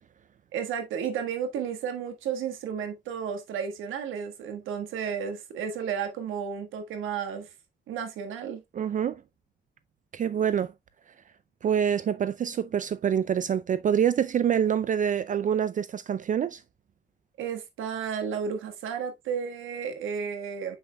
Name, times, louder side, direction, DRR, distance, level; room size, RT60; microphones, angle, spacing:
voice 1, 0.5-7.5 7.9-8.6 17.4-20.8, right 7 dB, 85° right, 1.5 m, -32 dB
voice 2, 8.7-9.2 10.1-10.7 11.6-16.6, right 8 dB, 40° right, 0.4 m, -26 dB
7.1 x 6.1 x 2.2 m
cardioid pair, 90°, 20 cm